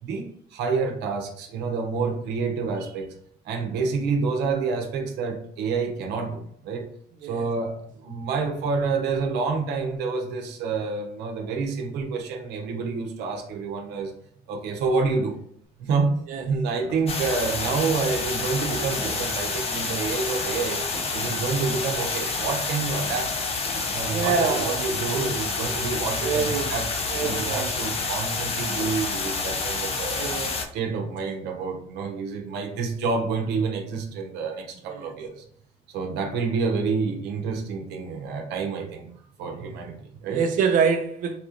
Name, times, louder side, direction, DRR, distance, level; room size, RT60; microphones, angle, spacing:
voice 1, 0.0-3.1 3.4-6.9 7.2-14.1 14.5-15.4 15.8-20.8 21.1-23.4 23.9-30.3 30.7-35.4 35.9-39.1 39.4-40.4, right 4 dB, 85° right, 0.7 m, -28 dB
sound 1, 15.8-15.9 16.3-24.8 25.1-25.4 25.8-30.5, left 2 dB, 70° left, 1.2 m, -44 dB
sound 2, 17.1-30.7, left 4 dB, 35° left, 0.6 m, -28 dB
voice 2, 24.1-24.9 26.2-26.7 27.1-27.7 30.2-30.8 34.9-35.1 40.3-41.4, right 6 dB, 55° right, 0.4 m, -26 dB
4.0 x 2.4 x 2.7 m
cardioid pair, 110°, 17 cm